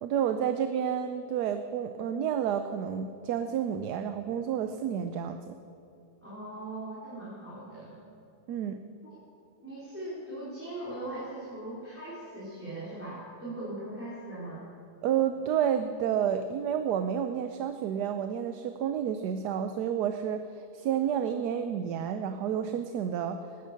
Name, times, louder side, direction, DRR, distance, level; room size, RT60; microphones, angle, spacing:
voice 1, 0.0-5.5 8.5-8.8 15.0-23.4, right 8 dB, 80° right, 8 dB, 1.2 m, -30 dB
voice 2, 6.2-8.1 9.0-9.1 9.6-14.6, right 1 dB, 5° right, -9 dB, 3.5 m, -40 dB
18.5 x 10.0 x 6.6 m, 2.7 s
omnidirectional pair, 1.7 m